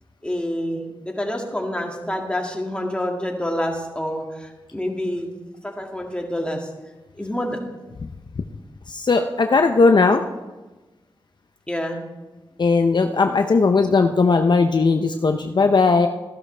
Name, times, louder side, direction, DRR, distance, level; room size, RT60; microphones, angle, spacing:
voice 1, 0.2-5.3 5.6-6.7 7.1-7.6 11.7-12.0, left 1 dB, 10° left, 1 dB, 2.1 m, -27 dB
voice 2, 8.9-10.2 12.6-16.1, left 4 dB, 55° left, 6 dB, 0.6 m, -18 dB
14.5 x 11.5 x 3.3 m, 1.1 s
cardioid pair, 55°, 9 cm